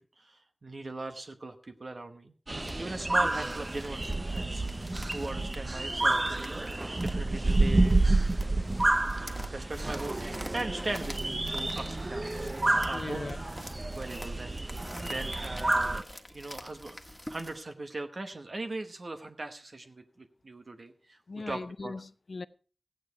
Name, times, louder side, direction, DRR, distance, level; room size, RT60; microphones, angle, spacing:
voice 1, 0.2-2.3 2.8-6.5 7.0-8.1 9.2-13.3 13.9-14.6 15.0-21.9, right 2 dB, 60° right, 7 dB, 1.0 m, -40 dB
sound 1, 2.5-16.0, right 2 dB, 40° right, 0.5 m, -29 dB
sound 2, 2.6-17.6, equal, 5° left, 1.5 m, -48 dB
voice 2, 12.9-13.5 21.3-22.5, left 3 dB, 75° left, 16 dB, 0.5 m, -39 dB
15.0 x 9.2 x 4.7 m, 0.39 s
wide cardioid pair, 60°, 0 cm